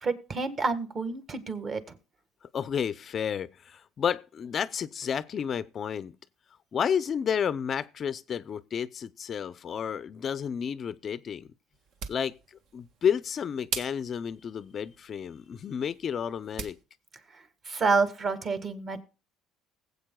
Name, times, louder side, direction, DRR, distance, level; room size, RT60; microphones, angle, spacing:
voice 1, 0.0-1.9 17.7-19.0, right 4 dB, 35° right, 1.6 m, -28 dB
voice 2, 2.5-6.1 6.7-11.5 12.1-12.3 12.7-16.8, left 7 dB, 40° left, 0.5 m, -31 dB
sound 1, 11.7-16.8, right 6 dB, 60° right, 1.5 m, -42 dB
20.0 x 8.2 x 2.2 m
cardioid pair, 130°, 0 cm